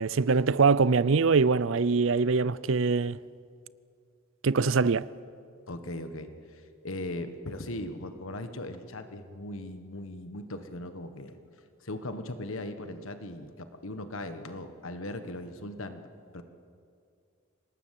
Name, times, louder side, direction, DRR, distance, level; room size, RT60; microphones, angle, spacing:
voice 1, 0.0-3.2 4.4-5.1, right 4 dB, 65° right, 0.5 m, -23 dB
voice 2, 5.7-11.4 11.8-16.0 16.3-16.4, left 1 dB, 80° left, 1.4 m, -39 dB
25.5 x 19.0 x 7.6 m
head